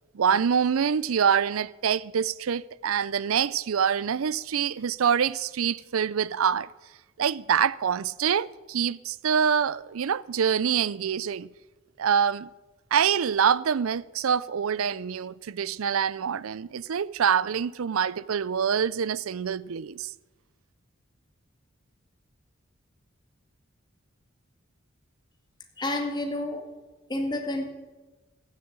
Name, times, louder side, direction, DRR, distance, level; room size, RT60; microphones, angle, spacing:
voice 1, 0.1-6.7 7.2-11.5 12.0-12.5 12.9-20.1, right 7 dB, 80° right, 0.5 m, -25 dB
voice 2, 25.8-26.7 27.1-27.7, left 1 dB, 20° left, 2.2 m, -29 dB
14.5 x 9.6 x 8.6 m
head